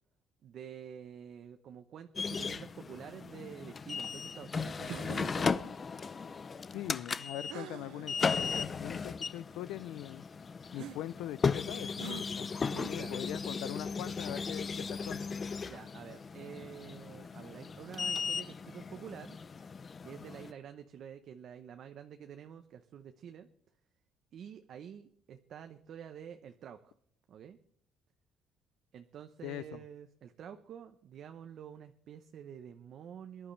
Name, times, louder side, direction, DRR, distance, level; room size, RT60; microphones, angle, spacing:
voice 1, 0.4-5.8 12.7-13.2 15.6-19.4 20.0-23.5 24.3-26.9 27.3-27.6 28.9-33.5, right 8 dB, 55° right, 0.8 m, -48 dB
sound 1, 2.2-20.5, left 5 dB, 30° left, 0.5 m, -36 dB
sound 2, 4.9-5.3 7.5-8.1 8.8-8.9 10.7-11.0 12.0-12.3, right 13 dB, 80° right, 0.5 m, -44 dB
voice 2, 6.7-10.2 10.7-15.2 29.4-29.8, left 14 dB, 80° left, 0.5 m, -42 dB
23.0 x 11.0 x 3.3 m
cardioid pair, 125°, 0 cm